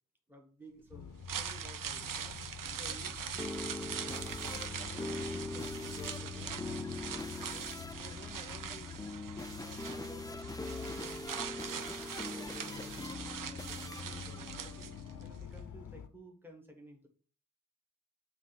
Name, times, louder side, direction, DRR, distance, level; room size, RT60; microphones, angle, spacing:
voice 1, 0.3-2.4 2.7-7.7 8.0-9.3 9.6-17.1, equal, 5° right, 2 dB, 1.4 m, -54 dB
sound 1, 0.9-16.1, left 6 dB, 65° left, 0.6 m, -48 dB
sound 2, 1.1-15.3 15.6-15.7, right 8 dB, 80° right, 0.6 m, -42 dB
sound 3, 2.6-15.3, left 2 dB, 10° left, 0.3 m, -43 dB
7.4 x 3.3 x 5.8 m, 0.41 s
wide cardioid pair, 110°, 32 cm